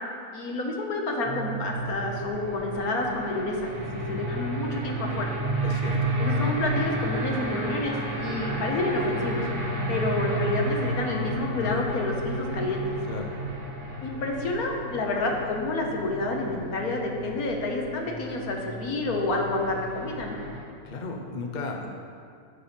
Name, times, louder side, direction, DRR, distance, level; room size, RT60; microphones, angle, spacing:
voice 1, 0.3-5.3 6.2-9.4 9.9-12.8 14.0-20.4, left 2 dB, 75° left, 1 dB, 1.6 m, -29 dB
sound 1, 1.2-20.6, right 1 dB, 50° right, 1.8 m, -32 dB
voice 2, 3.9-4.2 5.6-6.1 13.1-13.3 20.8-21.9, left 3 dB, 40° left, 2 dB, 0.7 m, -35 dB
10.0 x 6.8 x 4.3 m, 2.3 s
omnidirectional pair, 1.6 m